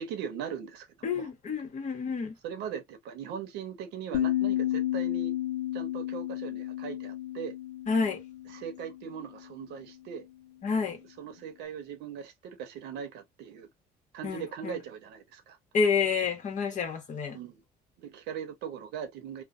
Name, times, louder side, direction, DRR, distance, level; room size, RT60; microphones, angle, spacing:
voice 1, 0.0-1.3 2.4-5.3 5.7-7.5 8.5-10.3 11.2-13.7 14.1-15.6 17.3-17.6 18.0-19.4, right 7 dB, 85° right, 0.9 m, -39 dB
voice 2, 1.0-2.4 7.9-8.2 10.6-11.0 14.2-14.8 15.7-17.4, left 5 dB, 45° left, 1.2 m, -29 dB
sound 1, 4.1-9.3, left 14 dB, 70° left, 0.7 m, -32 dB
3.1 x 2.2 x 2.6 m
cardioid pair, 110°, 17 cm